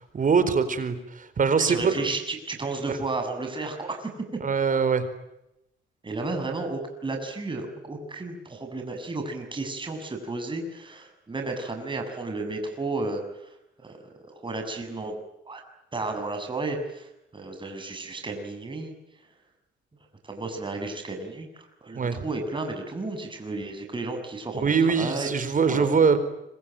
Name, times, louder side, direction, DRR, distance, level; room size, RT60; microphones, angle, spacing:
voice 1, 0.1-2.0 4.4-5.0 21.9-22.2 24.5-26.2, right 5 dB, 40° right, 12 dB, 4.5 m, -23 dB
voice 2, 1.7-4.4 6.0-13.5 13.8-14.1 14.4-15.1 15.5-15.6 15.9-18.9 20.2-25.9, right 3 dB, 25° right, 4 dB, 7.1 m, -33 dB
26.0 x 25.0 x 9.1 m, 0.87 s
cardioid pair, 90°, 20 cm